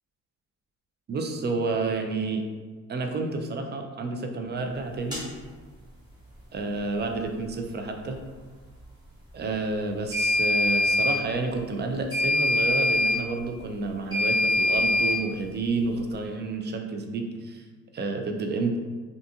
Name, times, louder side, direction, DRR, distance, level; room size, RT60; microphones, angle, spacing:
voice 1, 1.1-2.4 2.9-5.2 6.5-8.2 9.3-17.6 17.9-18.8, right 3 dB, 35° right, 4 dB, 0.4 m, -30 dB
sound 1, 5.1-5.3 10.1-11.2 12.1-13.2 14.1-15.2, left 2 dB, 15° right, 1.0 m, -23 dB
2.4 x 2.4 x 2.7 m, 1.4 s
cardioid pair, 90°, 30 cm